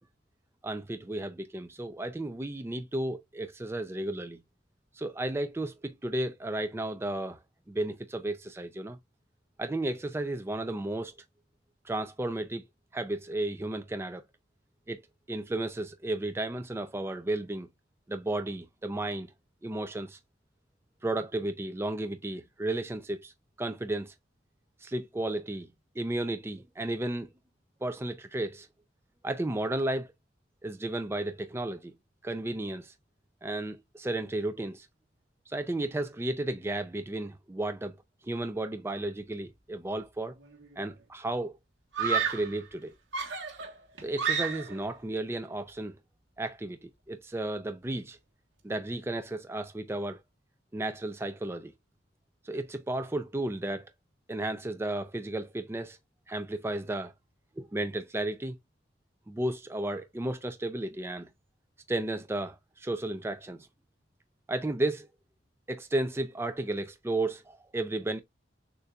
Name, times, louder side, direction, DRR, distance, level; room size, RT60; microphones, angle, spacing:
voice 1, 0.6-4.4 4.9-7.4 7.7-9.0 9.6-11.2 11.8-12.6 12.9-14.2 14.9-15.0 15.3-17.7 18.1-19.3 19.6-20.2 21.0-23.3 23.6-24.1 24.8-25.7 26.0-27.3 27.8-28.7 29.2-30.1 30.6-31.9 32.2-32.9 33.4-34.9 35.5-37.9 38.2-40.3 40.8-41.6 42.0-42.9 44.0-46.0 46.4-48.2 48.6-50.2 50.7-51.7 52.4-53.9 54.3-56.0 56.3-57.1 57.6-58.5 59.3-61.3 61.9-63.7 64.5-65.1 65.7-68.2, right 2 dB, 15° right, 0.4 m, -33 dB
Screaming, 40.4-40.9 41.9-42.6 43.1-44.9, right 6 dB, 85° right, 1.2 m, -31 dB
6.5 x 2.6 x 2.3 m
head